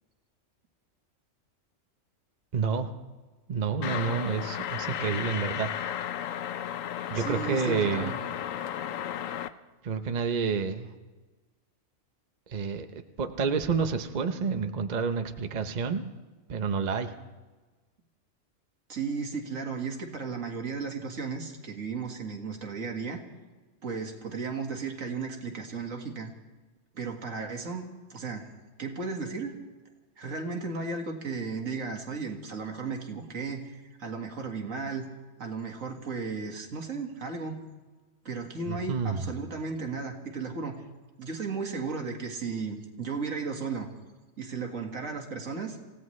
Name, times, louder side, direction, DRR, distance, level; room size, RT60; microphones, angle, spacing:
voice 1, 2.5-2.9 3.5-5.7 7.1-8.1 9.8-10.9 12.5-12.9 13.2-16.1 16.5-17.1 38.7-39.3, right 5 dB, 40° right, 7 dB, 0.9 m, -29 dB
sound 1, 3.8-9.5, left 10 dB, 80° left, 1.0 m, -34 dB
voice 2, 7.1-8.2 18.9-23.2 23.8-26.3 26.9-27.8 28.1-28.5 28.8-29.5 30.2-35.0 35.4-37.6 38.2-40.8 41.2-43.9 44.4-45.8, right 4 dB, 80° right, 3 dB, 2.2 m, -35 dB
27.5 x 16.5 x 3.2 m, 1.2 s
omnidirectional pair, 1.4 m